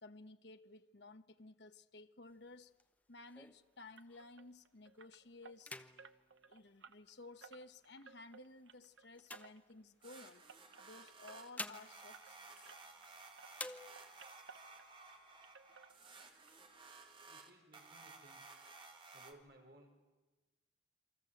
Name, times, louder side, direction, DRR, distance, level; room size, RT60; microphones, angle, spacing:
voice 1, 0.0-2.7 3.1-5.7 6.5-10.5 10.8-12.8, left 2 dB, 65° left, 1.1 m, -56 dB
sound 1, 2.3-4.5 5.0-5.2 5.5-7.5 8.1-10.3 11.2-13.2 13.5-14.4 14.8-14.9 15.2-15.9 16.3-17.2, left 2 dB, 10° left, 0.9 m, -52 dB
sound 2, 4.0-13.1 13.4-15.2 15.4-16.5 16.8-16.9 17.4-17.5 17.8-17.9, right 5 dB, 90° right, 1.1 m, -61 dB
sound 3, 10.0-19.3, right 3 dB, 30° right, 2.4 m, -56 dB
voice 2, 17.2-18.6 19.1-19.9, right 1 dB, 55° right, 5.3 m, -62 dB
28.5 x 25.0 x 7.9 m
head